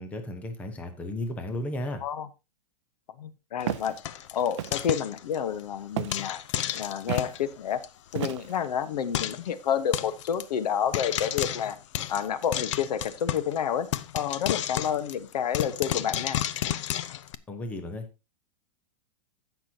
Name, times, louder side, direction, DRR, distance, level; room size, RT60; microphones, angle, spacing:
voice 1, 0.0-2.0 17.5-18.1, left 1 dB, 5° left, 7 dB, 0.8 m, -34 dB
voice 2, 3.2-3.9 4.3-6.4 6.7-7.8 8.1-11.8 12.1-13.9 14.1-16.4, left 8 dB, 75° left, 13 dB, 1.2 m, -29 dB
Frying (food), 3.6-5.6 6.1-7.4 7.8-7.9 8.1-8.3 8.5-8.6 9.1-9.5 9.9-10.4 10.9-13.6 13.9-17.4, left 11 dB, 50° left, 0.6 m, -32 dB
Walk footsteps, 3.7-3.9 4.6-4.9 6.0-6.3 7.1-7.3 8.1-8.7, right 14 dB, 45° right, 0.5 m, -33 dB
16.0 x 6.1 x 2.8 m, 0.26 s
supercardioid pair, 170°, 21 cm